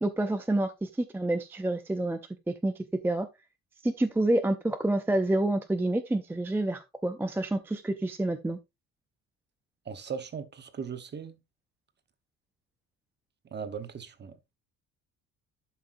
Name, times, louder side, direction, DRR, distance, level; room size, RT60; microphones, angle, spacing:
voice 1, 0.0-2.2 2.5-3.3 3.8-8.6, right 1 dB, 5° right, 0.4 m, -28 dB
voice 2, 9.9-11.4 13.5-14.4, right 6 dB, 30° right, 1.0 m, -38 dB
11.5 x 5.8 x 2.5 m
cardioid pair, 155°, 37 cm